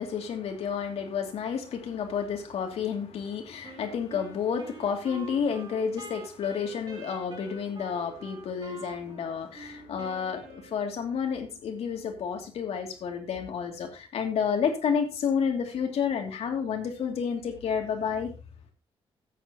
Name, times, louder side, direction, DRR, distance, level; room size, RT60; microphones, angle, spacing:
voice 1, 0.0-18.3, left 7 dB, 80° left, 2.7 m, -30 dB
Wind instrument woodwind instrument, 3.6-11.1, right 2 dB, 40° right, 3.1 m, -46 dB
13.5 x 9.3 x 3.0 m
cardioid pair, 105°, 10 cm